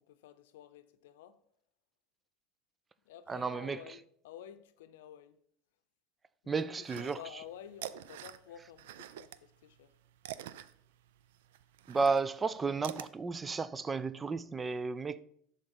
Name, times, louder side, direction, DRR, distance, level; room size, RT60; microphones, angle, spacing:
voice 1, 0.0-1.4 3.0-5.4 6.4-9.9, left 10 dB, 90° left, 0.6 m, -51 dB
voice 2, 3.3-3.8 6.5-7.2 11.9-15.2, right 4 dB, 15° right, 0.4 m, -33 dB
sound 1, 6.8-7.5 7.7-9.4 9.7-13.1, right 12 dB, 90° right, 0.4 m, -45 dB
11.0 x 3.9 x 5.4 m
supercardioid pair, 135°, 0 cm